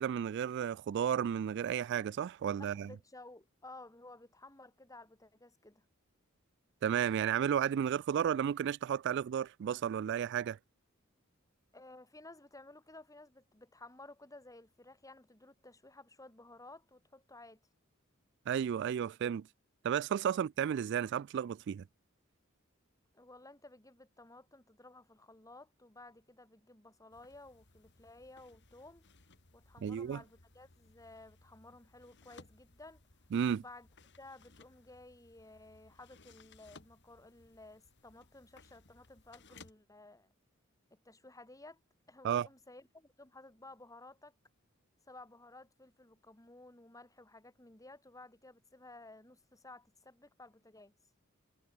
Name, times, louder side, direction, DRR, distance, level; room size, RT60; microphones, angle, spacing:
voice 1, 0.0-2.9 6.8-10.6 18.5-19.5 19.8-21.8 29.8-30.2 33.3-33.6 42.2-42.5, right 8 dB, 60° right, 0.3 m, -33 dB
voice 2, 2.6-5.8 11.7-17.6 20.3-20.5 23.1-29.1 29.5-33.0 33.5-33.9 34.2-40.3 40.9-41.8 42.1-44.3 45.1-50.9, left 2 dB, 15° left, 3.4 m, -55 dB
sound 1, 27.1-39.7, left 3 dB, 60° left, 2.8 m, -62 dB
head